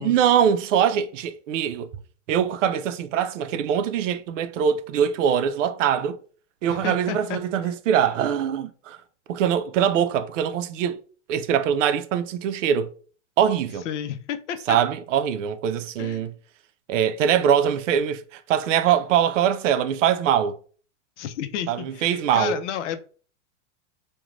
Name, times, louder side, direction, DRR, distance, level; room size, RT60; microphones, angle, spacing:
voice 1, 0.0-1.9 2.3-6.2 6.6-9.0 9.3-11.0 11.3-12.9 13.4-13.8 14.7-16.3 16.9-20.6 21.7-22.6, right 9 dB, 85° right, 0.5 m, -22 dB
voice 2, 6.7-7.7 13.9-14.8 16.0-16.3 21.2-23.0, left 9 dB, 75° left, 0.5 m, -32 dB
3.0 x 2.2 x 2.4 m
supercardioid pair, 150°, 36 cm